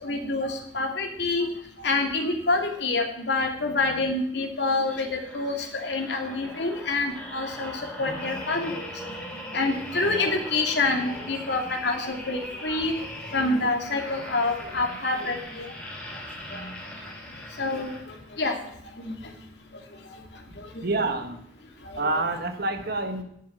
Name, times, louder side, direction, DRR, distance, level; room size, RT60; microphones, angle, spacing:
voice 1, 0.0-1.5 1.8-7.7 8.0-8.8 9.5-12.9 13.3-15.7 16.5-16.6 17.6-17.9 18.4-18.6 19.0-19.1 22.0-22.2, left 3 dB, 65° left, 2 dB, 2.7 m, -27 dB
sound 1, 4.8-18.4 18.9-19.1, left 1 dB, 5° left, 3.3 m, -40 dB
voice 2, 20.8-21.4 21.9-23.2, right 2 dB, 55° right, 6 dB, 1.6 m, -27 dB
11.0 x 7.6 x 8.1 m, 0.71 s
head